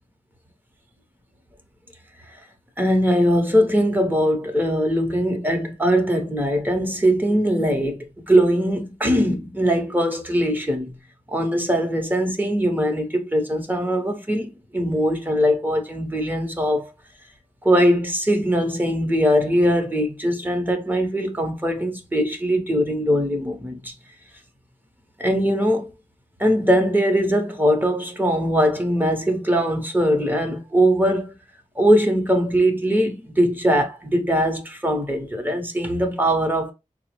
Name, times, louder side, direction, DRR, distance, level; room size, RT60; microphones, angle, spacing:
voice 1, 2.8-10.9 11.3-16.9 17.6-23.9 25.2-25.9 26.4-31.4 31.8-36.7, equal, 15° right, 0.8 m, -21 dB
4.3 x 2.0 x 3.0 m
wide cardioid pair, 95°, 14 cm